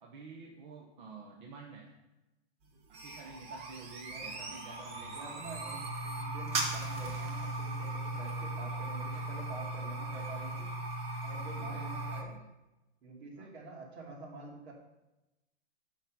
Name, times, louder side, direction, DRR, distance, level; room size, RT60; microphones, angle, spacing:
voice 1, 0.0-1.9 2.9-5.3 11.6-11.9 13.4-13.5, right 4 dB, 45° right, -1 dB, 1.0 m, -50 dB
sound 1, 2.6-12.2, right 2 dB, 15° right, 0.8 m, -38 dB
voice 2, 5.1-10.7 11.2-12.4 13.0-14.7, right 2 dB, 65° right, -1 dB, 2.6 m, -47 dB
7.1 x 5.8 x 5.2 m, 0.99 s
hypercardioid pair, 160°, 34 cm